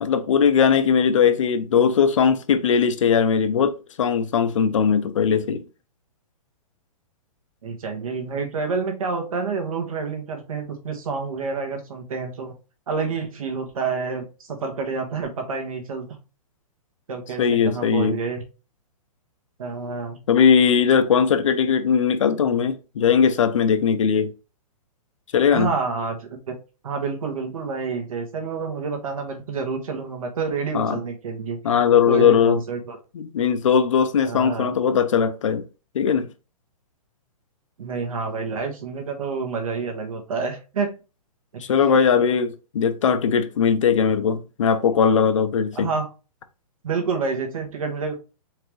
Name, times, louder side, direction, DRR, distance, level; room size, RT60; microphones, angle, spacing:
voice 1, 0.0-5.6 17.4-18.2 20.3-24.3 25.3-25.7 30.7-31.0 31.6-32.6 33.1-35.6 35.9-36.3 41.6-45.9, left 7 dB, 55° left, 0.7 m, -19 dB
voice 2, 7.6-12.6 12.9-16.1 17.1-18.4 19.6-20.2 25.5-26.5 26.8-31.6 32.1-33.0 34.2-34.7 37.8-40.9 41.9-42.2 45.7-46.1 46.8-48.2, right 4 dB, 65° right, 1.6 m, -28 dB
4.6 x 3.5 x 3.2 m
hypercardioid pair, 175°, 20 cm